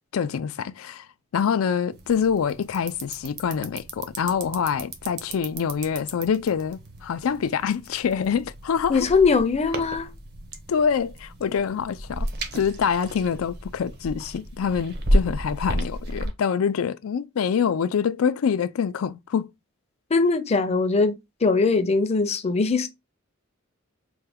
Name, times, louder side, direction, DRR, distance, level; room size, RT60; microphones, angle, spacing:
voice 1, 0.1-1.1 1.3-9.1 10.7-19.5, left 7 dB, 90° left, 0.4 m, -25 dB
sound 1, 1.9-16.3, right 1 dB, 55° right, 0.8 m, -32 dB
voice 2, 8.9-10.1 20.1-22.9, left 4 dB, 30° left, 0.5 m, -21 dB
4.4 x 2.2 x 3.4 m
head